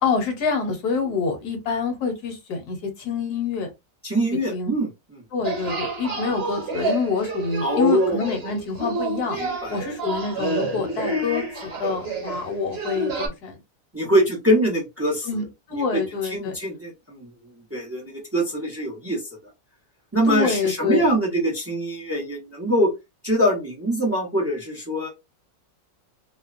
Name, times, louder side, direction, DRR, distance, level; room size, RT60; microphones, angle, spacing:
voice 1, 0.0-3.7 4.5-4.7 5.3-9.4 9.7-13.6 15.2-16.6 20.2-21.0, left 5 dB, 65° left, 1.3 m, -26 dB
voice 2, 4.0-5.2 7.6-8.3 9.3-9.8 13.9-15.3 15.8-17.3 17.7-19.2 20.1-22.9 23.2-25.1, right 1 dB, 20° right, 0.3 m, -23 dB
sound 1, 5.4-13.3, right 2 dB, 40° right, 1.1 m, -29 dB
3.0 x 2.0 x 2.4 m
omnidirectional pair, 1.9 m